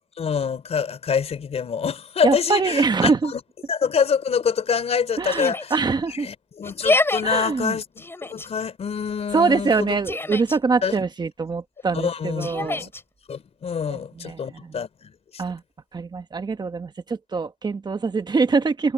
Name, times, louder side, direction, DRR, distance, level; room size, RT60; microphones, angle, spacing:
voice 1, 0.2-3.4 3.7-5.7 6.1-10.0 10.8-10.9 11.9-12.9 13.3-15.4, left 6 dB, 55° left, 3.5 m, -26 dB
voice 2, 2.2-3.3 5.2-6.3 7.2-7.8 9.3-12.9 13.9-14.7 15.4-15.6 15.9-18.9, right 4 dB, 35° right, 1.4 m, -24 dB
Yell, 5.3-5.8 6.6-7.2 8.0-8.5 9.7-10.6 12.4-13.0, left 2 dB, 20° left, 4.4 m, -26 dB
cardioid pair, 105°, 13 cm